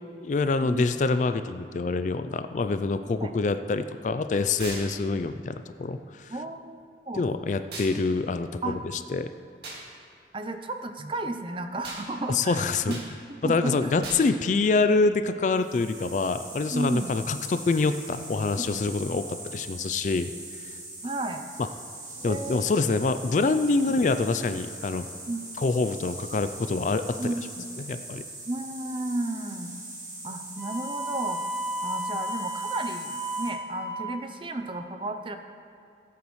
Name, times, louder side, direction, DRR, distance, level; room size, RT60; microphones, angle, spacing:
voice 1, 0.2-6.3 7.1-8.8 9.1-9.3 12.3-13.0 13.4-19.2 19.5-20.3 22.2-25.1 25.6-27.3 27.8-28.2, left 3 dB, 45° left, 10 dB, 0.3 m, -26 dB
sound 1, 4.6-4.9 7.7-7.9 9.6-9.8 11.8-12.0 12.9-13.1 14.0-14.3, right 2 dB, 65° right, 2.1 m, -37 dB
voice 2, 6.3-6.8 7.1-7.2 8.6-8.8 10.3-13.0 13.3-13.9 16.7-17.1 18.6-18.8 21.0-21.4 22.3-22.8 25.3-25.4 27.2-27.6 28.5-29.8 30.2-31.4 31.8-35.4, right 2 dB, 30° right, 7 dB, 0.5 m, -33 dB
sound 2, 15.5-33.5, right 2 dB, 45° right, 2.0 m, -41 dB
Wind instrument woodwind instrument, 30.6-34.1, right 1 dB, 15° right, 2.8 m, -33 dB
16.5 x 8.6 x 3.1 m, 2.5 s
head